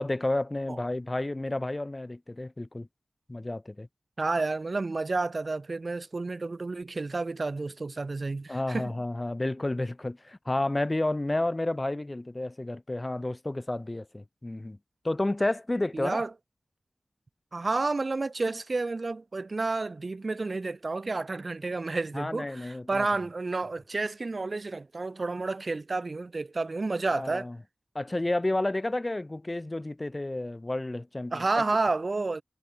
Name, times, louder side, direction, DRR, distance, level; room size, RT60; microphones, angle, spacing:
voice 1, 0.0-2.9 3.3-3.9 8.5-14.8 15.0-16.2 22.1-23.1 27.1-27.6 27.9-31.4, left 2 dB, 30° left, 2.1 m, -31 dB
voice 2, 4.2-8.9 15.9-16.3 17.5-27.5 31.3-32.4, right 3 dB, 55° right, 1.6 m, -30 dB
wide cardioid pair, 65°, 0 cm